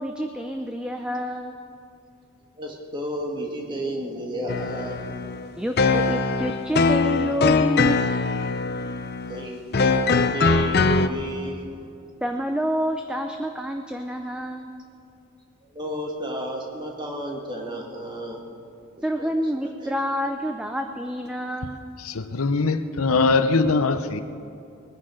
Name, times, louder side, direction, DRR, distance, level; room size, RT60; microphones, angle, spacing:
voice 1, 0.0-1.6 5.6-8.1 12.2-14.7 19.0-21.8, equal, 5° right, 5 dB, 0.5 m, -28 dB
voice 2, 2.6-5.1 9.2-11.9 15.7-18.4 19.2-19.3 19.8-19.9, right 1 dB, 20° right, 0 dB, 1.9 m, -32 dB
sound 1, 4.5-11.1, left 4 dB, 45° left, 0.6 m, -22 dB
voice 3, 22.0-24.2, left 3 dB, 80° left, 11 dB, 0.7 m, -22 dB
21.0 x 10.0 x 6.4 m, 2.6 s
head